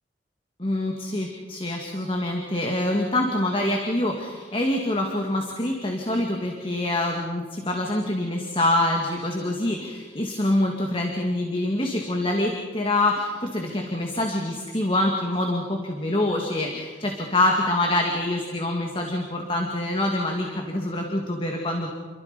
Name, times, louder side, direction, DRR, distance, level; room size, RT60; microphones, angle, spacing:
voice 1, 0.6-21.9, left 1 dB, 30° left, 1 dB, 2.2 m, -25 dB
30.0 x 23.5 x 5.3 m, 1.5 s
head